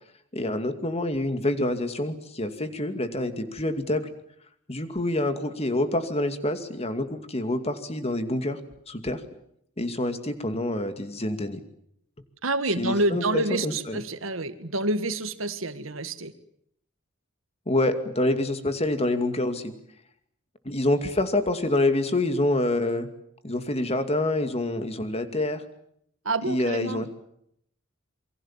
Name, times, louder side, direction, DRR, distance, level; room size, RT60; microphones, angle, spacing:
voice 1, 0.3-4.1 4.7-8.6 8.9-9.2 9.8-11.6 12.8-14.0 17.7-19.7 20.6-23.1 23.4-25.6 26.4-27.1, left 1 dB, 30° left, 9 dB, 2.4 m, -27 dB
voice 2, 12.4-16.3 26.2-27.1, right 2 dB, 75° right, 11 dB, 1.8 m, -28 dB
27.5 x 23.5 x 7.4 m, 0.72 s
head